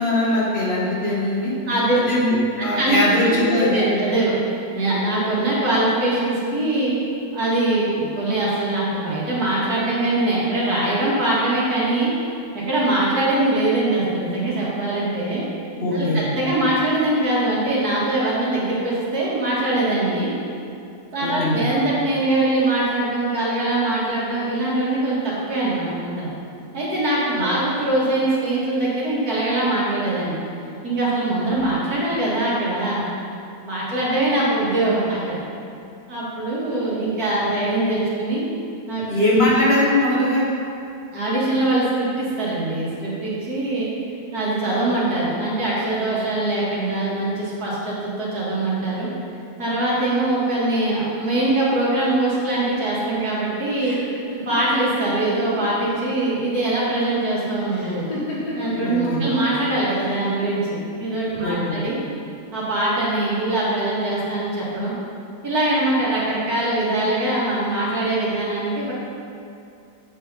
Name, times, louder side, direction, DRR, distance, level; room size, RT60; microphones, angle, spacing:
voice 1, 0.0-1.5 1.9-4.0 15.7-16.2 21.2-21.6 27.4-27.5 39.1-40.5 58.8-59.2 61.4-61.8, left 1 dB, 40° left, -6 dB, 1.7 m, -21 dB
voice 2, 1.7-2.0 2.6-3.0 3.2-7.0 7.3-12.1 12.5-15.4 15.9-20.3 21.1-26.3 26.7-30.4 30.8-33.1 33.6-35.4 36.1-38.4 38.9-39.0 41.1-43.9 44.3-49.1 49.6-54.0 54.5-58.1 58.6-62.0 62.5-64.9 65.4-68.9, right 2 dB, 70° right, -7 dB, 2.5 m, -22 dB
sound 1, 52.0-55.6 55.9-56.6 57.7-58.9 59.9-60.5, left 1 dB, 65° left, 2.7 m, -34 dB
8.2 x 5.5 x 5.6 m, 2.5 s
omnidirectional pair, 1.7 m